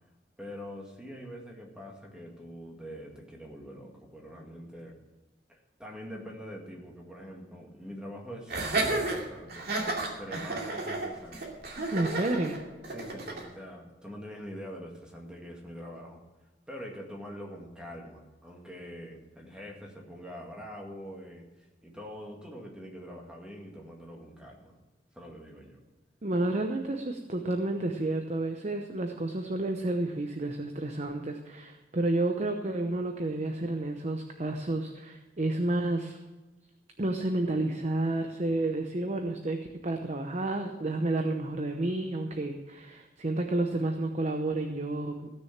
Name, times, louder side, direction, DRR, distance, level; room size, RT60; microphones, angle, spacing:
voice 1, 0.4-5.0 5.5-11.9 12.9-16.2 16.7-24.7 25.1-25.8, equal, 5° right, -1 dB, 2.1 m, -44 dB
Laughter, 8.5-13.5, right 2 dB, 60° right, 2.6 m, -32 dB
voice 2, 11.9-12.6 26.2-36.2 37.0-45.3, right 2 dB, 40° right, 5 dB, 0.8 m, -30 dB
16.0 x 6.6 x 7.3 m, 1.2 s
head